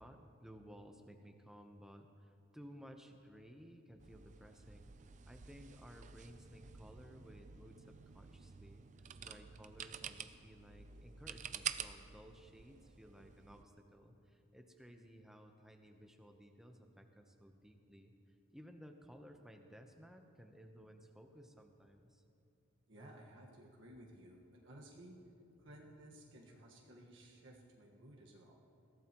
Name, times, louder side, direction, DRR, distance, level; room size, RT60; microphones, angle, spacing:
voice 1, 0.0-4.9 5.2-22.2, equal, ahead, 4 dB, 0.8 m, -57 dB
sound 1, 4.0-13.6, right 8 dB, 35° right, 0.4 m, -49 dB
voice 2, 22.9-28.6, right 1 dB, 60° right, -2 dB, 1.5 m, -57 dB
21.5 x 15.5 x 3.0 m, 2.6 s
head